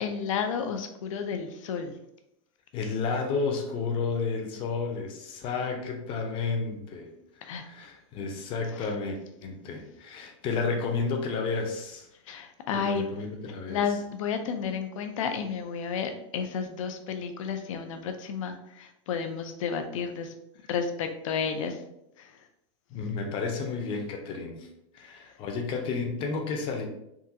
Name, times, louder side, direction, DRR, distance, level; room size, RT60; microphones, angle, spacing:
voice 1, 0.0-1.9 7.4-7.6 8.8-8.9 12.3-13.0 13.7-20.3 20.7-21.8 22.2-22.3, left 6 dB, 80° left, 6 dB, 0.6 m, -31 dB
voice 2, 2.7-7.1 7.5-12.1 12.7-13.8 22.9-24.7 24.9-26.9, left 4 dB, 30° left, 3 dB, 0.6 m, -31 dB
3.7 x 2.3 x 2.7 m, 0.81 s
supercardioid pair, 155°, 17 cm